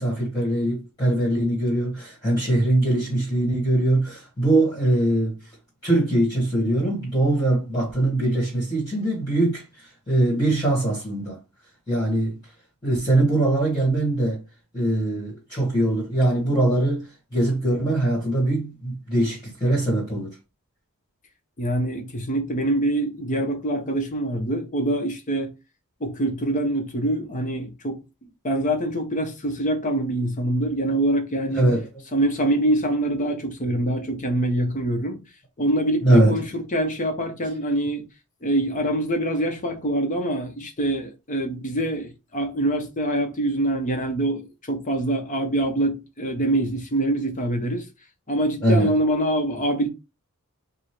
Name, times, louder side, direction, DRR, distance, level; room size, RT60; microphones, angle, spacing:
voice 1, 0.0-5.3 5.8-11.4 11.9-12.4 12.8-14.4 14.7-17.0 17.3-20.4 31.5-31.9 36.0-36.4 48.6-49.0, right 1 dB, 20° left, 1.8 m, -22 dB
voice 2, 21.6-25.5 26.0-28.0 28.4-31.6 32.1-35.2 35.6-38.1 38.4-47.8 48.3-49.9, right 1 dB, 35° left, 1.0 m, -24 dB
5.2 x 2.4 x 3.3 m
head